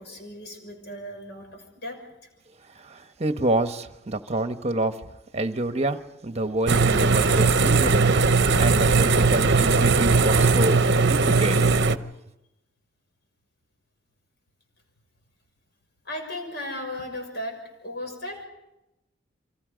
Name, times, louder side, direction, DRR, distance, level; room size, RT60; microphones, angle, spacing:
voice 1, 0.0-2.0 16.0-17.6 17.8-18.4, left 1 dB, 60° left, 6.4 m, -36 dB
voice 2, 2.7-5.0 5.3-11.6 11.9-12.1, right 1 dB, 35° right, 1.2 m, -28 dB
sound 1, 6.7-12.0, right 4 dB, 60° right, 0.8 m, -19 dB
29.0 x 24.5 x 5.2 m
head